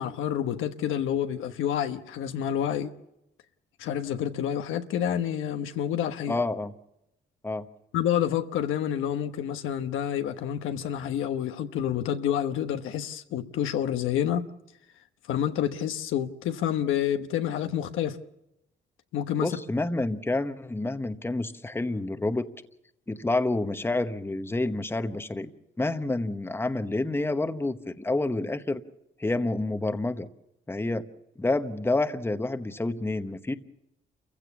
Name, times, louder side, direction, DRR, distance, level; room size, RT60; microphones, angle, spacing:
voice 1, 0.0-2.9 3.8-6.3 7.9-14.5 15.3-18.2 19.1-19.5, left 10 dB, 85° left, 1.1 m, -28 dB
voice 2, 6.3-6.7 7.4-7.7 19.4-22.5 23.1-25.5 25.8-28.8 29.2-30.3 30.7-31.1 31.4-33.5, left 2 dB, 10° left, 1.0 m, -28 dB
28.5 x 15.5 x 7.1 m
cardioid pair, 90°, 20 cm